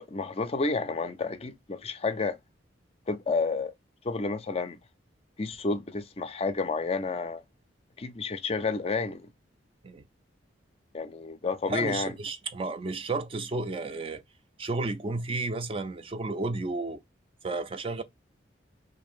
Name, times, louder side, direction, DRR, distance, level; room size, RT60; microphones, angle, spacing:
voice 1, 0.0-2.4 3.1-3.7 4.0-4.8 5.4-7.4 8.0-9.3 10.9-12.1, left 3 dB, 30° left, 0.4 m, -30 dB
voice 2, 11.7-14.2 14.6-17.0 17.4-18.0, right 3 dB, 30° right, 0.4 m, -32 dB
3.2 x 2.6 x 4.3 m
head